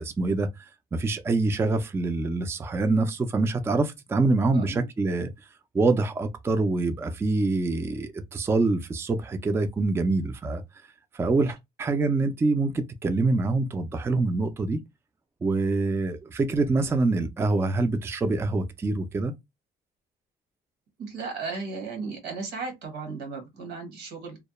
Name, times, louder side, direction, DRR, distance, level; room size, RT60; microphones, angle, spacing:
voice 1, 0.0-5.3 5.7-10.6 11.1-14.8 15.4-19.3, right 3 dB, 15° right, 0.3 m, -25 dB
voice 2, 4.5-4.8 21.0-24.4, right 4 dB, 90° right, 1.2 m, -35 dB
2.2 x 2.0 x 2.9 m
cardioid pair, 110°, 17 cm